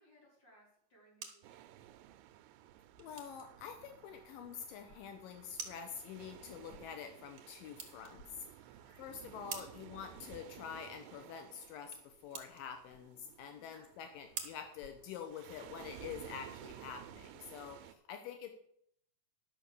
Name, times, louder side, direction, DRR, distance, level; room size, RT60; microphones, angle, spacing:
voice 1, 0.0-1.7 8.8-9.2 13.6-13.9, equal, 30° left, -4 dB, 4.9 m, -65 dB
sound 1, 0.7-15.7, right 7 dB, 55° right, 2.2 m, -53 dB
sound 2, 1.4-17.9, right 12 dB, 85° right, 2.3 m, -55 dB
voice 2, 3.0-18.5, left 7 dB, 85° left, 6 dB, 2.6 m, -47 dB
sound 3, 4.8-5.4 6.7-7.2 8.1-8.8 9.3-9.4 10.1-10.5 12.9-13.1 14.8-15.3 16.4-16.8, left 1 dB, 65° left, 1.7 m, -62 dB
11.5 x 6.0 x 6.8 m, 0.70 s
omnidirectional pair, 4.0 m